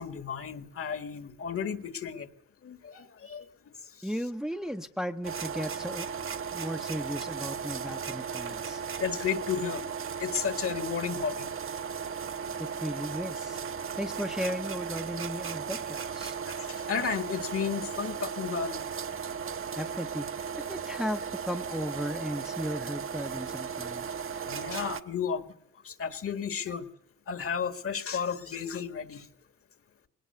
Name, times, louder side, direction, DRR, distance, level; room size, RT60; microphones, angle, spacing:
voice 1, 0.0-2.3 2.6-3.5 4.0-4.1 9.0-9.8 10.2-11.5 16.2-18.8 24.5-25.5 25.8-26.8 27.3-29.3, left 7 dB, 50° left, 11 dB, 1.9 m, -33 dB
voice 2, 4.0-6.1 6.5-8.8 12.6-13.6 14.0-16.4 19.8-24.1, equal, ahead, 7 dB, 0.9 m, -35 dB
sound 1, 5.2-25.0, right 6 dB, 45° right, 1.0 m, -36 dB
21.0 x 18.5 x 6.9 m, 0.70 s
cardioid pair, 90°, 30 cm